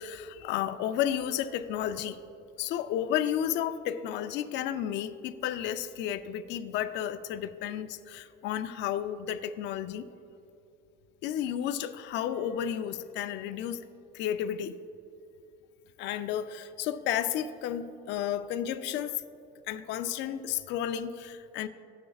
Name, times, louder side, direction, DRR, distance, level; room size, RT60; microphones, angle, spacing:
voice 1, 0.0-2.2 2.6-10.1 11.2-13.8 14.1-14.8 16.0-19.2 19.7-21.7, left 10 dB, 60° left, 10 dB, 0.5 m, -32 dB
16.5 x 6.2 x 2.4 m, 2.6 s
cardioid pair, 150°, 21 cm